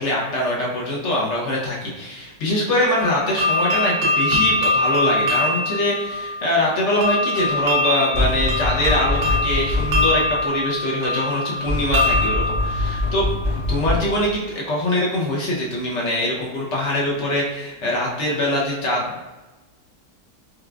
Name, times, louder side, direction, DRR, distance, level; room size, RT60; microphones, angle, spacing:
voice 1, 0.0-13.3 13.7-19.2, left 1 dB, 60° left, -3 dB, 0.8 m, -23 dB
sound 1, 3.0-13.8, left 2 dB, 70° right, 0.5 m, -23 dB
Golpes puerta, 8.1-10.4 11.7-14.3, left 2 dB, 20° left, 0.7 m, -24 dB
4.8 x 2.3 x 2.2 m, 1.1 s
omnidirectional pair, 1.7 m